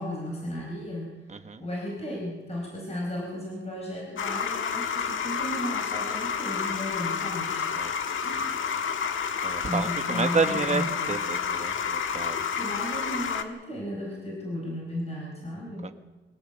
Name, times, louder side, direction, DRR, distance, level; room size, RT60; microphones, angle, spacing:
voice 1, 0.0-1.2 1.6-7.7 8.2-8.6 9.7-10.9 12.5-15.9, left 1 dB, 30° left, -2 dB, 4.8 m, -35 dB
voice 2, 1.3-1.6 7.8-7.9 9.4-12.6 15.8-15.9, right 4 dB, 35° right, 8 dB, 1.4 m, -30 dB
sound 1, 4.2-13.4, left 6 dB, 85° left, 1.5 m, -30 dB
24.0 x 16.0 x 8.1 m, 1.1 s
wide cardioid pair, 175°, 20 cm